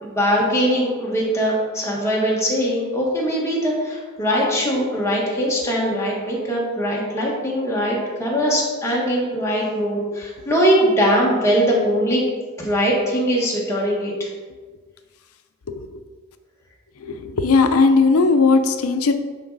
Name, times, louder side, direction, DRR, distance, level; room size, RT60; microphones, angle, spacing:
voice 1, 0.0-12.2 12.6-14.3, equal, 15° left, -4 dB, 1.5 m, -21 dB
voice 2, 15.7-16.1 17.0-19.1, left 4 dB, 75° left, 8 dB, 0.5 m, -18 dB
9.6 x 3.9 x 4.0 m, 1.4 s
head